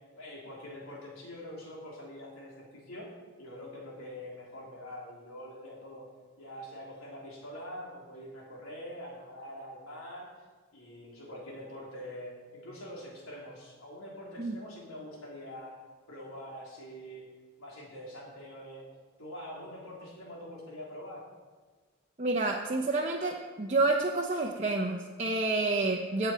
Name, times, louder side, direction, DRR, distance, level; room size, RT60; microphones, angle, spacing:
voice 1, 0.2-3.1 3.4-6.1 6.4-10.3 10.7-15.8 16.1-17.2 17.6-18.9 19.2-21.3, equal, 90° left, -2 dB, 3.4 m, -44 dB
voice 2, 22.2-26.3, right 2 dB, 30° right, 0 dB, 0.8 m, -29 dB
16.0 x 7.9 x 5.1 m, 1.4 s
head